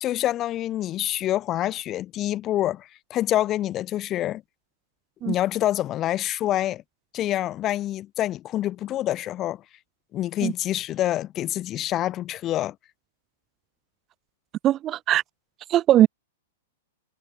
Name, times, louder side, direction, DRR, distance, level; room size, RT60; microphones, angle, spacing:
voice 1, 0.0-4.4 5.2-6.8 7.1-9.6 10.1-12.7, left 13 dB, 30° left, 1.8 m, -26 dB
voice 2, 14.6-15.2 15.7-16.1, right 12 dB, 30° right, 1.3 m, -19 dB
hypercardioid pair, 110°, 0 cm